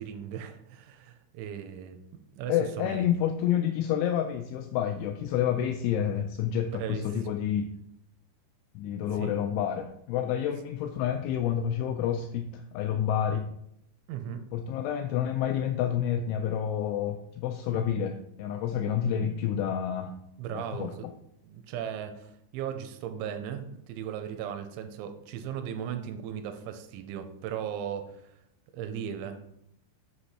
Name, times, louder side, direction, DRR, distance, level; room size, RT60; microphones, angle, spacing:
voice 1, 0.0-2.0 2.3-3.1 6.7-7.0 9.1-9.3 14.1-14.4 17.7-17.8 20.4-20.9 21.4-28.4 28.7-29.4, right 9 dB, 85° right, 6 dB, 3.1 m, -37 dB
voice 2, 2.5-7.7 8.8-13.5 14.5-20.1 20.5-21.1, left 9 dB, 85° left, 5 dB, 2.9 m, -29 dB
8.1 x 6.1 x 4.3 m, 0.76 s
omnidirectional pair, 5.5 m